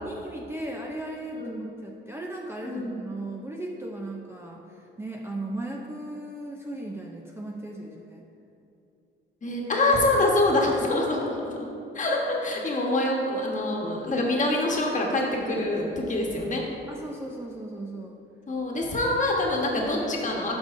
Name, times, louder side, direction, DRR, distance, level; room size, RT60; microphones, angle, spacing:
voice 1, 0.0-4.6 5.0-8.2 12.6-12.7 16.9-18.1, right 1 dB, 10° right, -1 dB, 0.5 m, -36 dB
voice 2, 2.6-3.0 9.4-11.5 11.9-16.6 18.5-20.6, left 2 dB, 35° left, -1 dB, 1.3 m, -25 dB
11.0 x 5.4 x 2.6 m, 2.7 s
cardioid pair, 95°, 21 cm